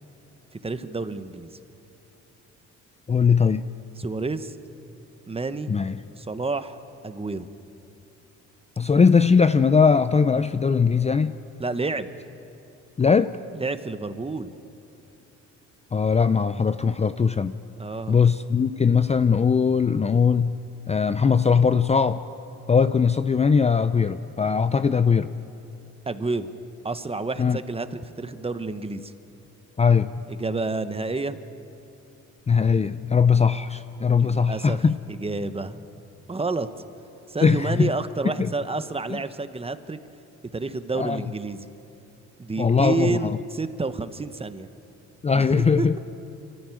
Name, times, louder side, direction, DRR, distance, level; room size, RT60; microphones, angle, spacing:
voice 1, 0.6-1.5 4.0-4.6 5.3-5.7 6.2-6.8 7.0-7.5 11.6-12.1 13.5-14.5 17.8-18.2 26.1-26.5 26.8-29.1 30.3-31.4 34.2-34.8 35.1-35.8 36.3-36.7 37.3-40.0 40.5-41.7 42.4-44.7 45.4-46.0, right 3 dB, 20° right, 11 dB, 1.0 m, -29 dB
voice 2, 3.1-3.6 5.7-6.0 8.8-11.3 13.0-13.3 15.9-17.5 18.1-20.5 20.9-22.2 22.7-25.3 27.4-27.6 29.8-30.3 32.5-35.0 37.4-37.9 38.4-38.5 41.0-41.2 42.6-43.3 45.2-45.9, left 5 dB, 20° left, 12 dB, 0.5 m, -20 dB
25.5 x 14.5 x 9.1 m, 2.8 s
cardioid pair, 90°, 30 cm